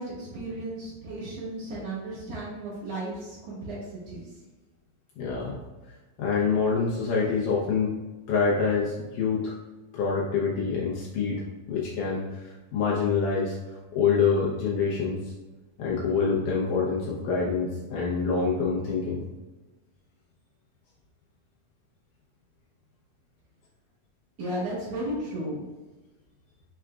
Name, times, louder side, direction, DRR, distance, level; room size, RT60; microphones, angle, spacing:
voice 1, 0.0-3.8 4.1-4.2 24.4-25.7, right 1 dB, 55° right, -6 dB, 2.4 m, -34 dB
voice 2, 5.2-5.6 6.2-7.9 8.3-9.5 9.9-13.6 13.9-15.3 15.8-19.3, left 5 dB, 75° left, -4 dB, 2.1 m, -26 dB
5.7 x 3.7 x 2.3 m, 1.2 s
omnidirectional pair, 3.9 m